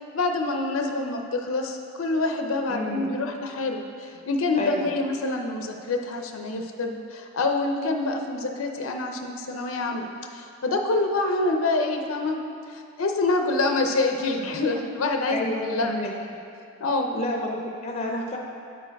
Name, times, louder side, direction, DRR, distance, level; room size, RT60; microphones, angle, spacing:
voice 1, 0.1-10.0 10.3-12.4 12.7-15.4 15.7-16.0 16.8-17.2, left 2 dB, 75° left, 4 dB, 0.6 m, -26 dB
voice 2, 2.7-3.2 4.6-5.0 15.3-16.2 17.1-18.4, left 1 dB, 30° left, 0 dB, 0.5 m, -30 dB
8.6 x 4.6 x 4.6 m, 2.5 s
head